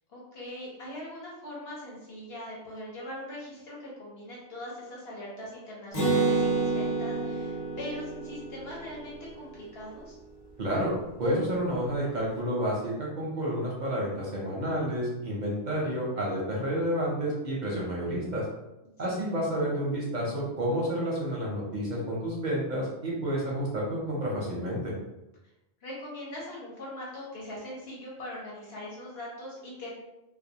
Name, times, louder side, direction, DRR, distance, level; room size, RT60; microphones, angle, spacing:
voice 1, 0.1-10.2 19.1-19.2 25.8-29.9, left 1 dB, 60° left, -5 dB, 0.9 m, -41 dB
Acoustic guitar, 5.9-9.6, right 3 dB, 30° left, 0.8 m, -29 dB
voice 2, 10.6-10.9 11.2-18.4 19.0-24.9, equal, 50° right, -4 dB, 0.6 m, -30 dB
2.3 x 2.2 x 2.7 m, 0.97 s
omnidirectional pair, 1.3 m